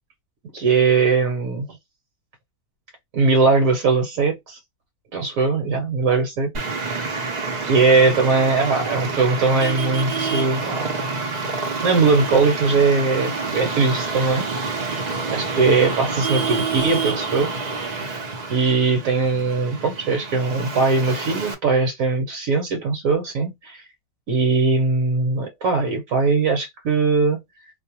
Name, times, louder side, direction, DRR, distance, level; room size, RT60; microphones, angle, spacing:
voice 1, 0.5-1.8 3.1-4.6 5.1-6.5 7.7-10.9 11.8-14.5 15.3-17.5 18.5-23.8 24.3-27.4, right 4 dB, 65° right, 1.1 m, -20 dB
Traffic noise roadway noise, 6.5-21.5, right 4 dB, 50° right, 0.5 m, -27 dB
2.6 x 2.1 x 2.8 m
omnidirectional pair, 1.6 m